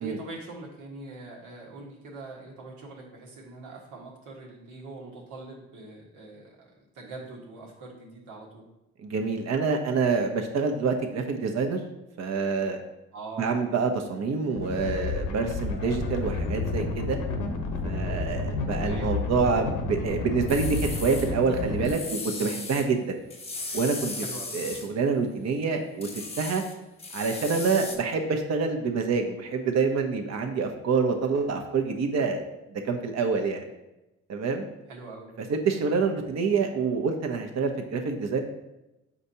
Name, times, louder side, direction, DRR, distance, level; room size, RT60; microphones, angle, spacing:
voice 1, 0.0-8.7 13.1-13.6 18.8-19.1 24.2-24.5 34.9-35.3, right 3 dB, 85° right, -3 dB, 1.6 m, -43 dB
voice 2, 9.0-11.8 12.2-12.8 13.4-17.2 17.8-23.2 23.7-24.1 24.5-26.1 26.4-26.6 27.1-32.4 32.7-33.6 34.3-34.7 35.5-38.4, right 4 dB, 60° right, 4 dB, 0.9 m, -27 dB
sound 1, 14.6-21.9, left 3 dB, 85° left, 0.9 m, -30 dB
sound 2, 20.5-21.3 21.8-22.9 23.3-24.9 26.0-28.0, left 3 dB, 20° left, 0.8 m, -37 dB
6.9 x 5.0 x 2.8 m, 0.95 s
cardioid pair, 90°, 30 cm